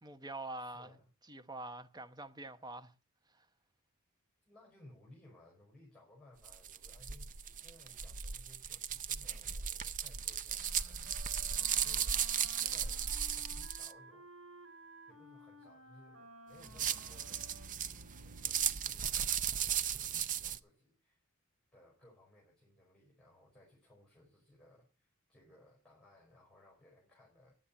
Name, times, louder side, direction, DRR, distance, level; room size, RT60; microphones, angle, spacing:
voice 1, 0.0-1.0 1.3-2.9 3.3-3.5, right 2 dB, 20° right, 1.0 m, -45 dB
voice 2, 0.6-1.1 4.4-13.0 13.4-14.8 15.1-17.6 18.1-21.2 21.7-27.6, left 1 dB, 5° left, 5.2 m, -62 dB
sound 1, 6.4-13.9 16.6-20.6, right 8 dB, 40° right, 0.6 m, -36 dB
Wind instrument woodwind instrument, 10.5-18.7, right 1 dB, 80° right, 2.8 m, -57 dB
10.5 x 8.6 x 8.5 m
head